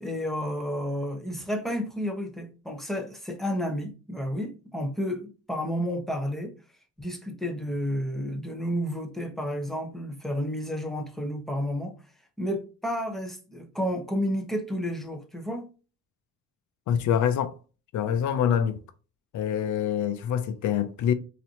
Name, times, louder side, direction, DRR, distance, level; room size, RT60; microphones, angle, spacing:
voice 1, 0.0-6.5 7.0-12.0 12.4-15.7, equal, ahead, 1.1 m, -31 dB
voice 2, 16.9-17.5 17.9-18.8 19.3-21.1, left 8 dB, 75° left, 0.6 m, -25 dB
4.0 x 3.0 x 2.9 m
cardioid pair, 90°, 30 cm